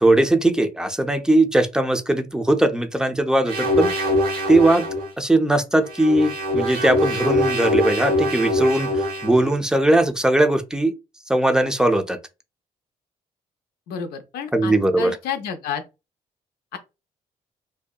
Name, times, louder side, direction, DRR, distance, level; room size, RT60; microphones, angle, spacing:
voice 1, 0.0-4.1 4.5-4.9 5.2-10.9 11.3-12.2 14.5-15.2, right 1 dB, 5° right, 0.5 m, -19 dB
sound 1, 3.5-5.1 5.8-9.5, left 1 dB, 80° right, 0.8 m, -23 dB
voice 2, 13.9-15.8 16.7-16.8, left 7 dB, 80° left, 0.5 m, -30 dB
2.7 x 2.1 x 2.2 m
supercardioid pair, 60°, 16 cm